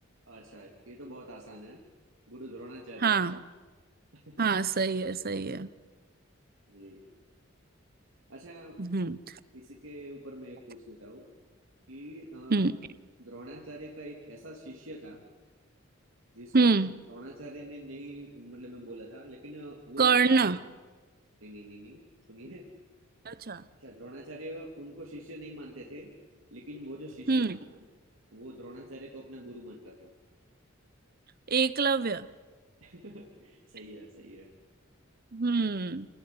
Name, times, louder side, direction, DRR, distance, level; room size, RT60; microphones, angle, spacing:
voice 1, 0.2-1.8 2.3-3.1 4.1-4.5 6.7-7.0 8.3-8.8 9.5-11.2 11.9-12.7 13.2-15.2 16.3-16.7 17.1-20.1 21.4-22.7 23.8-26.1 26.5-27.4 27.7-27.8 28.3-30.1 32.8-34.5, right 1 dB, 70° right, -1 dB, 3.1 m, -45 dB
voice 2, 3.0-3.4 4.4-5.7 8.8-9.2 12.5-12.8 16.5-16.9 20.0-20.6 23.3-23.6 27.3-27.6 31.5-32.3 35.3-36.1, right 4 dB, 45° right, 16 dB, 0.9 m, -25 dB
27.0 x 19.0 x 9.7 m, 1.3 s
head